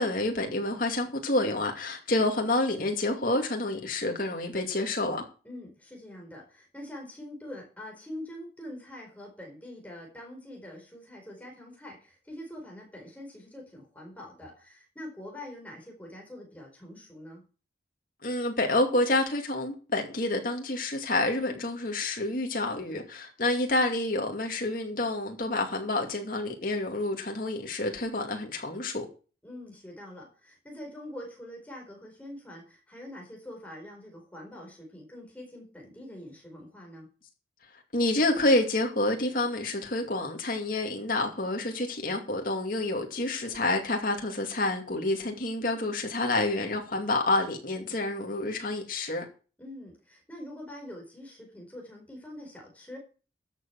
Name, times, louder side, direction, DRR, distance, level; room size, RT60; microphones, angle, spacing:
voice 1, 0.0-5.2 18.2-29.1 37.9-49.2, left 2 dB, 45° left, 2.4 m, -28 dB
voice 2, 5.4-17.4 21.4-21.7 29.4-37.1 47.8-48.0 49.6-53.0, left 1 dB, 10° left, 4.5 m, -44 dB
13.0 x 6.9 x 6.0 m
head